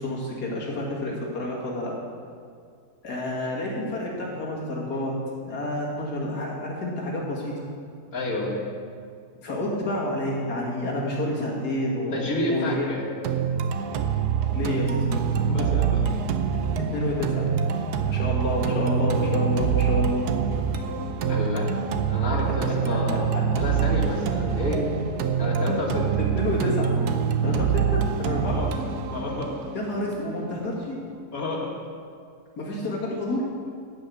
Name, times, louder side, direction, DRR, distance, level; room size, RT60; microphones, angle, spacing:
voice 1, 0.0-1.9 3.0-5.1 5.4-7.6 9.4-12.9 14.5-14.9 16.8-17.5 18.1-20.3 20.7-20.8 22.9-23.0 26.2-26.9 27.4-28.6 29.7-31.0 32.6-33.4, left 1 dB, 85° left, -4 dB, 2.6 m, -29 dB
voice 2, 8.1-8.6 12.1-13.0 15.3-16.1 18.4-18.5 21.3-21.7 22.1-24.9 25.4-26.1 28.4-28.7 29.1-29.5 31.3-31.7, left 1 dB, 60° left, -2 dB, 2.2 m, -29 dB
sound 1, 13.2-31.2, right 7 dB, 80° right, 1.3 m, -25 dB
12.0 x 5.8 x 8.2 m, 2.2 s
omnidirectional pair, 1.7 m